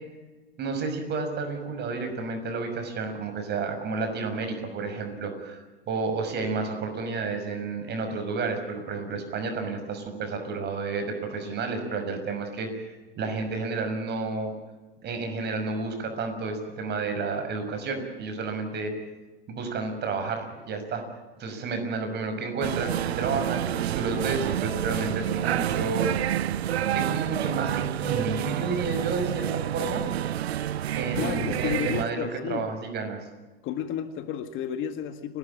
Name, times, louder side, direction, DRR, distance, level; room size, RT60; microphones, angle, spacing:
voice 1, 0.6-14.5 15.0-18.9 19.5-21.0 21.4-26.1 26.9-30.0 31.0-33.2, right 4 dB, 35° right, 6 dB, 6.2 m, -31 dB
sound 1, 22.6-32.0, right 11 dB, 80° right, 0.8 m, -28 dB
voice 2, 31.2-32.7 33.6-35.4, left 9 dB, 40° left, 9 dB, 1.8 m, -32 dB
30.0 x 13.0 x 8.6 m, 1.2 s
hypercardioid pair, 105°, 31 cm